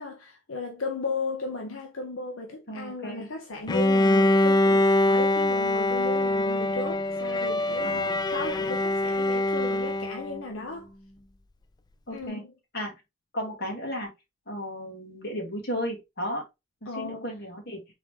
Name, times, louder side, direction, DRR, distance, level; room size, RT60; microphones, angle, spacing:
voice 1, 0.0-10.9 12.1-12.5 16.9-17.3, left 3 dB, 85° left, 0.7 m, -35 dB
voice 2, 2.7-3.3 7.8-8.2 12.1-12.4 12.7-13.0 13.3-14.1 14.5-16.4 16.8-17.8, equal, 55° left, 2.0 m, -34 dB
Bowed string instrument, 3.7-10.4, left 1 dB, 20° left, 0.3 m, -24 dB
3.8 x 3.5 x 3.1 m
head